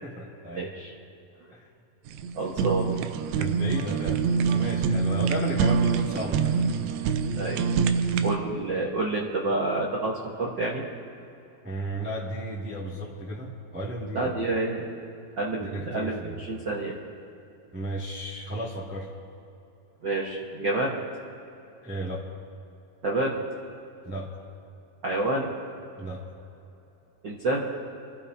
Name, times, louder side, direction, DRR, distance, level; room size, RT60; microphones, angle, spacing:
voice 1, 0.0-0.7 1.5-1.7 3.3-6.6 11.6-14.4 15.6-16.4 17.7-19.1 21.8-22.3 24.0-24.4 26.0-26.2, right 1 dB, 5° right, -5 dB, 1.0 m, -34 dB
voice 2, 0.6-0.9 2.3-2.9 7.4-7.6 8.2-10.8 14.1-14.9 15.4-16.9 20.0-20.9 23.0-23.3 25.0-25.5 27.2-27.6, right 2 dB, 65° right, -3 dB, 1.1 m, -28 dB
Fire, 2.1-8.4, right 6 dB, 90° right, 2.6 m, -25 dB
26.0 x 15.0 x 2.8 m, 2.9 s
omnidirectional pair, 4.2 m